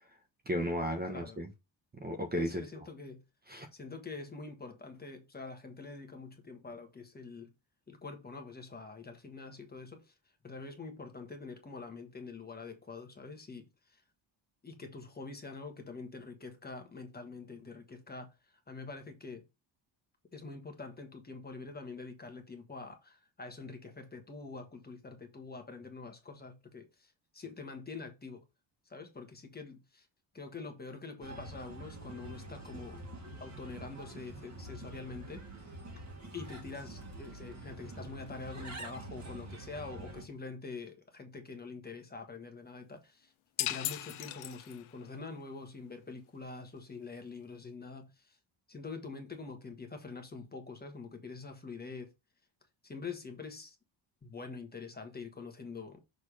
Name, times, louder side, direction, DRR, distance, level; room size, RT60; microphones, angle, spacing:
voice 1, 0.5-1.5 2.0-2.8 3.5-3.7, equal, 20° right, 1.0 m, -34 dB
voice 2, 1.1-1.4 2.6-3.2 3.7-7.5 7.9-10.1 10.4-14.0 14.6-18.3 18.7-19.4 20.3-28.4 28.9-30.1 30.3-33.0 33.4-35.7 36.3-43.3 43.6-48.4 48.7-52.1 52.8-53.8 54.2-56.0, left 4 dB, 20° left, 1.3 m, -45 dB
Bird, 31.2-40.2, right 2 dB, 35° right, 1.9 m, -46 dB
sound 1, 43.6-45.1, left 14 dB, 90° left, 0.8 m, -37 dB
6.6 x 3.5 x 4.9 m
cardioid pair, 150°, 47 cm